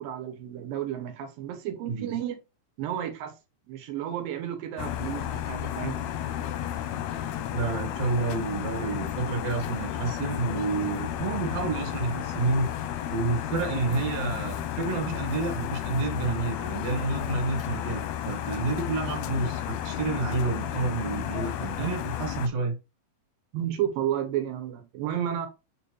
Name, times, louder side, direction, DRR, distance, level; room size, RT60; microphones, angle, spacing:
voice 1, 0.0-2.4 2.8-3.4 3.7-6.0 11.3-11.4 23.5-25.5, right 10 dB, 80° right, 2.9 m, -32 dB
sound 1, 4.8-22.5, left 11 dB, 75° left, 1.7 m, -32 dB
voice 2, 7.5-12.7 13.1-22.8, right 3 dB, 55° right, 2.6 m, -29 dB
7.2 x 5.4 x 3.2 m
omnidirectional pair, 3.9 m